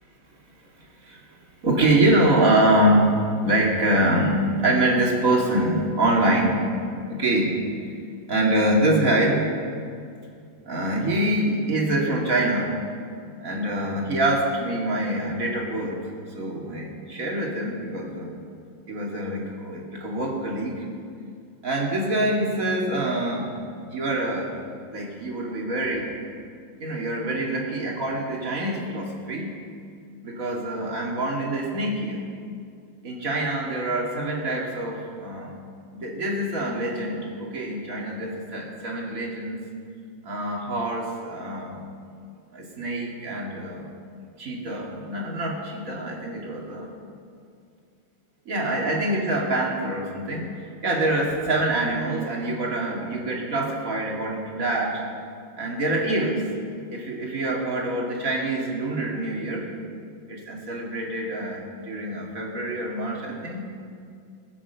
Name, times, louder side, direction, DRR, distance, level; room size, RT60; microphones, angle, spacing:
voice 1, 1.6-3.1 3.4-6.6 7.1-7.5 8.3-9.4 10.7-12.7 13.4-16.0 16.3-18.4 18.9-20.9 21.6-23.5 23.9-24.5 24.9-26.1 26.8-29.6 30.2-32.3 33.0-35.5 36.0-39.6 40.2-41.9 42.5-43.9 44.4-46.9 48.5-55.0 55.6-56.4 56.9-59.7 60.3-63.6, right 1 dB, 45° right, -2 dB, 2.6 m, -25 dB
20.5 x 7.3 x 6.8 m, 2.3 s
omnidirectional pair, 2.1 m